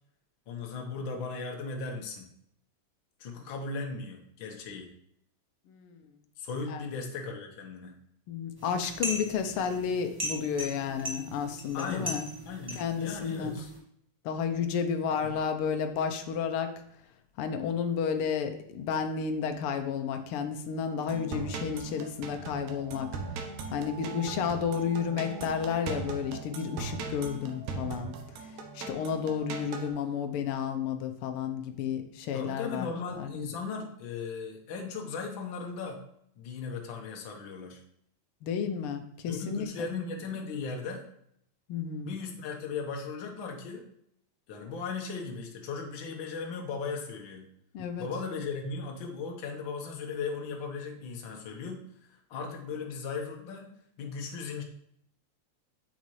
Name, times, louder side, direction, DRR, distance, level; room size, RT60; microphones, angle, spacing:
voice 1, 0.5-2.3 3.2-4.9 6.4-7.9 11.7-13.7 15.1-15.4 32.3-36.0 36.4-37.8 39.3-41.0 42.0-43.9 44.5-47.5 48.0-51.8 52.3-53.7 54.0-54.6, left 4 dB, 55° left, 2 dB, 1.5 m, -37 dB
voice 2, 5.7-6.0 6.7-6.8 8.3-12.2 12.7-13.6 14.2-16.7 17.4-23.1 23.7-28.2 28.7-32.9 33.2-33.5 38.4-39.9 41.7-42.1 47.7-48.1, left 7 dB, 80° left, 6 dB, 1.2 m, -32 dB
sound 1, 8.6-13.8, equal, 10° right, 1.0 m, -39 dB
sound 2, 21.1-29.9, right 4 dB, 85° right, 2.4 m, -39 dB
8.1 x 7.2 x 3.2 m, 0.71 s
omnidirectional pair, 3.4 m